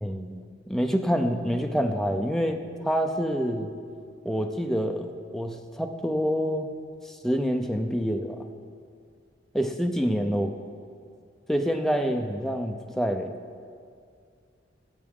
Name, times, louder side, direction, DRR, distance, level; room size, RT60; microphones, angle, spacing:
voice 1, 0.0-3.7 4.2-5.0 5.3-6.7 7.2-8.4 9.5-10.5 11.5-13.3, equal, ahead, 4 dB, 0.5 m, -27 dB
16.0 x 7.3 x 3.7 m, 2.2 s
head